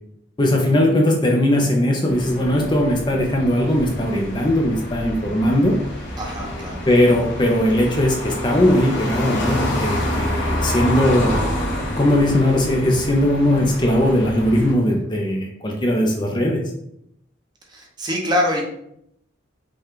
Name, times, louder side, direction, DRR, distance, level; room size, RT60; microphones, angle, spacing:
voice 1, 0.4-5.8 6.9-11.4 12.0-16.6, left 1 dB, 25° left, 0 dB, 0.5 m, -19 dB
sound 1, 2.1-14.7, left 1 dB, 70° left, 1.3 m, -27 dB
voice 2, 6.2-6.8 17.7-18.6, left 1 dB, 20° right, -1 dB, 0.8 m, -24 dB
5.4 x 2.3 x 3.7 m, 0.76 s
head